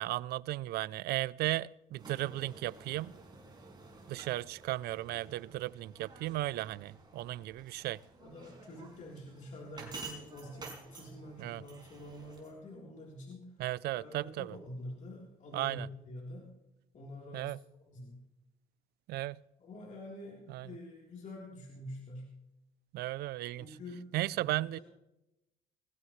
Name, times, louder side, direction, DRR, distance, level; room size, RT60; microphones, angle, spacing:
voice 1, 0.0-3.1 4.1-8.0 11.4-11.6 13.6-14.6 15.5-15.9 17.3-17.6 19.1-19.4 20.5-20.7 22.9-23.8 24.1-24.8, right 16 dB, 70° right, 0.4 m, -35 dB
sound 1, 2.0-12.5, right 3 dB, 25° right, 5.2 m, -51 dB
voice 2, 8.2-13.4 13.9-15.8 16.1-16.4 16.9-17.5 17.9-18.2 19.6-22.3 23.6-24.0 24.3-24.8, left 1 dB, 45° left, 3.6 m, -47 dB
20.5 x 15.5 x 3.2 m
cardioid pair, 110°, 17 cm